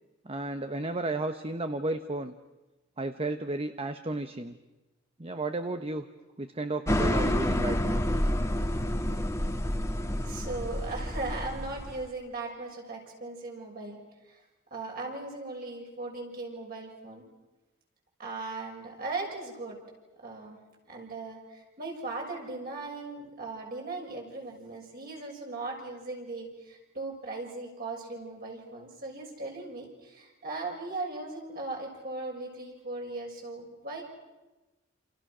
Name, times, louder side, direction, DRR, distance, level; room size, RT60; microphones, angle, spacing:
voice 1, 0.2-2.3 3.0-4.6 5.2-6.0 6.4-8.0, right 2 dB, 30° right, 8 dB, 1.0 m, -33 dB
sound 1, 6.9-12.1, left 1 dB, 15° left, 1.5 m, -29 dB
voice 2, 10.2-14.0 14.7-17.2 18.2-19.8 20.2-20.6 20.9-21.4 21.8-34.0, right 3 dB, 45° right, 0 dB, 6.7 m, -38 dB
28.5 x 28.5 x 6.2 m, 1.1 s
head